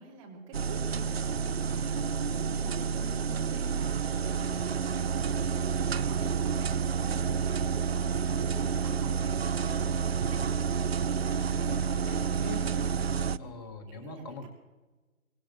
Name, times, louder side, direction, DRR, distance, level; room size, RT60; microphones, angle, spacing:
voice 1, 0.0-5.4 5.7-9.1 9.5-10.1 13.2-13.6 13.9-14.5, right 3 dB, 25° right, 1 dB, 3.2 m, -48 dB
sound 1, 0.5-13.4, right 6 dB, 50° right, 0.4 m, -29 dB
voice 2, 11.4-12.7 13.4-14.5, left 3 dB, 15° left, 6 dB, 1.0 m, -43 dB
24.5 x 16.0 x 3.3 m, 1.2 s
figure-of-eight pair, 150°, 42 cm